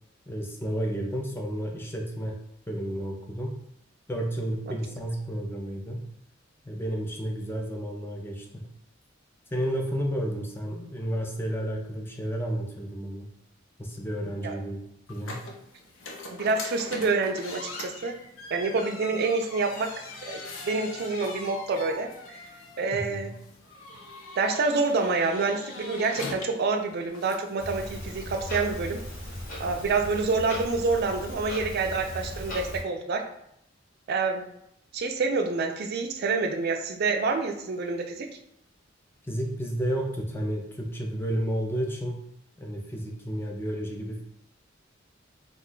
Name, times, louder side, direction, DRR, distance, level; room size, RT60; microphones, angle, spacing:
voice 1, 0.3-2.4 2.7-3.6 4.1-6.1 6.6-8.7 9.5-13.3 13.8-14.8 15.1-15.5 22.9-23.3 39.2-42.3 42.6-44.2, equal, 10° left, 0 dB, 0.5 m, -31 dB
sound 1, 15.1-28.4, left 2 dB, 75° left, 0.5 m, -42 dB
voice 2, 16.3-18.2 18.5-22.4 22.8-23.3 24.4-29.0 29.6-33.3 34.1-34.4 34.9-38.4, right 4 dB, 55° right, 5 dB, 0.4 m, -27 dB
Clock, 27.6-32.8, equal, 50° left, 0.9 m, -37 dB
2.4 x 2.2 x 3.7 m, 0.77 s
head